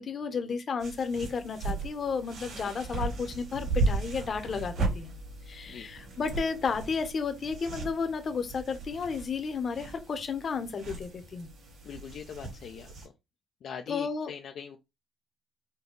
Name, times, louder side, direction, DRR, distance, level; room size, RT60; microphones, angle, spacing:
voice 1, 0.0-5.1 5.5-11.5 13.9-14.3, left 5 dB, 50° left, 1.0 m, -32 dB
sound 1, 0.8-13.1, right 3 dB, 65° right, 3.1 m, -36 dB
voice 2, 11.8-13.1 13.6-14.8, left 7 dB, 70° left, 0.6 m, -42 dB
5.4 x 2.3 x 3.9 m
cardioid pair, 90°, 0 cm